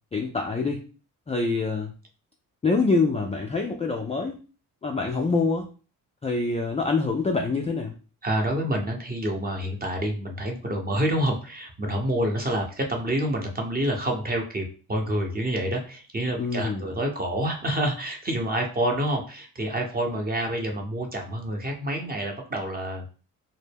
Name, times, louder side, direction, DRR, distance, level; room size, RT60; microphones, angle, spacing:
voice 1, 0.1-0.8 1.3-1.9 2.6-4.4 4.8-5.7 6.2-7.9 16.4-16.8, left 3 dB, 15° left, 1 dB, 0.3 m, -25 dB
voice 2, 8.2-23.1, right 1 dB, 20° right, 2 dB, 0.8 m, -28 dB
2.2 x 2.0 x 3.3 m, 0.36 s
supercardioid pair, 55°, 41 cm